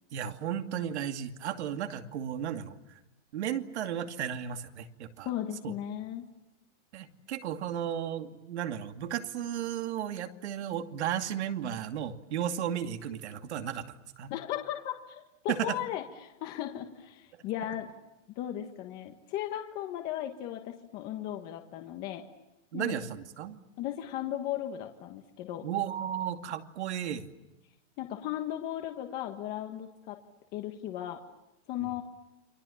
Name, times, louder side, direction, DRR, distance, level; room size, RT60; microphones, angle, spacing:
voice 1, 0.1-2.8 3.3-5.3 5.6-5.7 6.9-14.3 15.5-15.8 22.7-23.6 25.6-27.3 31.8-31.9, right 9 dB, 65° right, 6 dB, 2.6 m, -34 dB
voice 2, 5.2-6.3 14.3-17.9 18.4-22.2 22.7-23.0 23.8-25.7 28.0-30.2 30.5-31.2 31.7-32.0, left 12 dB, 25° left, 4 dB, 1.5 m, -36 dB
30.0 x 25.5 x 7.2 m, 0.98 s
supercardioid pair, 175°, 36 cm